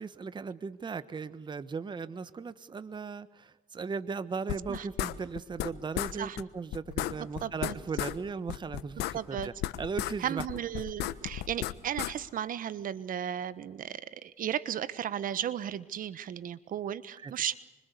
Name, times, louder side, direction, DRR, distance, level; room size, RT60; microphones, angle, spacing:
voice 1, 0.0-9.5 9.8-10.4 17.2-17.3, right 5 dB, 25° right, 14 dB, 1.2 m, -37 dB
sound 1, 4.5-5.7 5.9-6.1 6.4-6.5 6.7-8.2 8.5-10.1 10.4-12.1, left 14 dB, 80° left, 1.3 m, -33 dB
voice 2, 7.4-7.7 9.1-9.5 10.2-17.5, right 10 dB, 55° right, 16 dB, 1.3 m, -35 dB
26.0 x 25.5 x 8.4 m, 1.0 s
cardioid pair, 110°, 17 cm